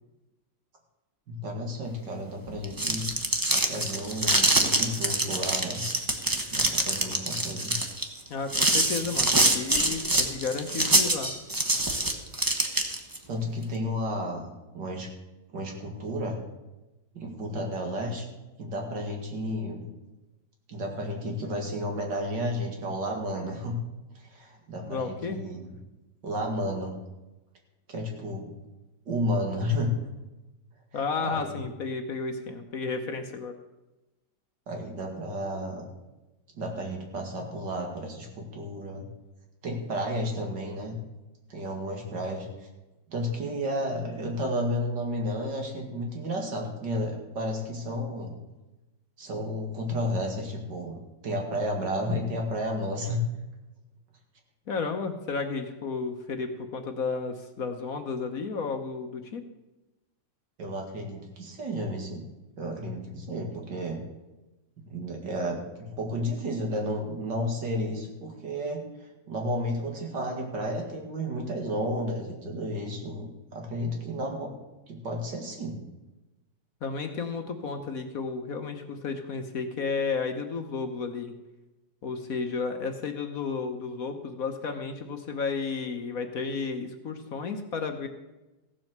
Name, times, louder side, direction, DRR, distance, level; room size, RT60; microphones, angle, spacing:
voice 1, 1.3-3.1 3.7-5.9 6.5-7.8 13.3-15.1 15.5-16.4 17.1-18.2 18.6-19.8 20.7-23.8 24.1-25.6 26.2-27.0 27.9-28.5 29.1-29.9 31.2-31.6 34.7-35.8 36.6-39.1 39.6-41.0 41.5-42.7 43.1-48.3 49.2-51.0 51.2-53.2 60.6-62.2 62.6-64.0 64.8-74.6 74.9-75.8, equal, 65° right, 1 dB, 2.8 m, -32 dB
sound 1, 2.5-13.2, right 1 dB, 15° right, 0.8 m, -25 dB
voice 2, 8.3-11.3 24.8-25.4 30.9-33.5 54.7-59.4 76.8-81.3 82.0-88.1, left 4 dB, 55° left, 6 dB, 1.3 m, -32 dB
15.5 x 7.7 x 6.6 m, 1.0 s
omnidirectional pair, 2.0 m